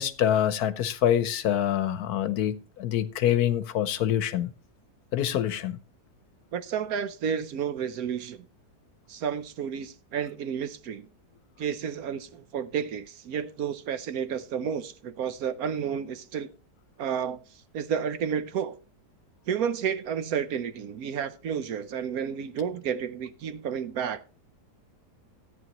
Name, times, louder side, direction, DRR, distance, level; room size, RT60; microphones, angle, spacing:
voice 1, 0.0-4.5 5.1-5.8, left 10 dB, 70° left, 1.2 m, -26 dB
voice 2, 6.5-8.5 9.1-11.1 11.6-16.5 17.0-17.4 17.7-18.8 19.5-24.3, right 7 dB, 65° right, 1.1 m, -31 dB
14.0 x 9.5 x 3.0 m
omnidirectional pair, 1.7 m